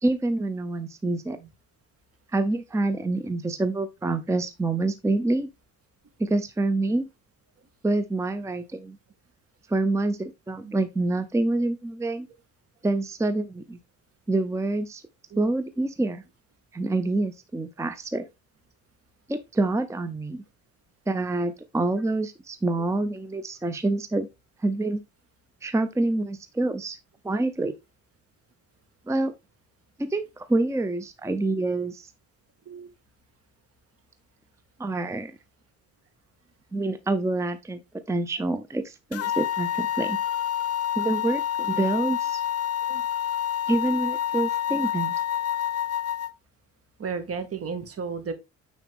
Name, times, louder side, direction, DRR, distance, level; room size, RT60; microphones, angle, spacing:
voice 1, 0.0-1.4 2.3-5.5 6.2-7.1 7.8-9.0 9.7-12.3 12.8-13.8 14.3-15.0 15.4-16.2 16.7-18.3 19.3-20.4 21.1-24.3 24.6-25.0 25.6-27.0 27.2-27.7 29.1-29.3 30.0-32.1 34.8-35.3 36.7-37.8 38.1-40.2 41.0-42.4 43.7-45.1, right 2 dB, 10° right, 0.6 m, -26 dB
sound 1, 39.1-46.3, left 10 dB, 50° left, 0.6 m, -28 dB
voice 2, 47.0-48.3, right 5 dB, 50° right, 1.8 m, -34 dB
9.0 x 4.2 x 3.5 m
cardioid pair, 90°, 30 cm